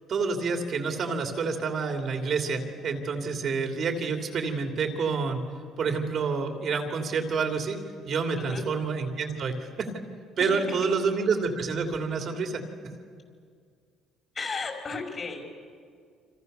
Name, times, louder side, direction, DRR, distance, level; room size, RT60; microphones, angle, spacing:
voice 1, 0.1-5.4 5.8-7.8 8.1-9.9 10.4-12.6, right 5 dB, 45° right, 4 dB, 2.9 m, -28 dB
voice 2, 14.3-15.5, left 4 dB, 35° left, 2 dB, 5.0 m, -34 dB
29.0 x 26.0 x 6.8 m, 2.1 s
cardioid pair, 120°, 0 cm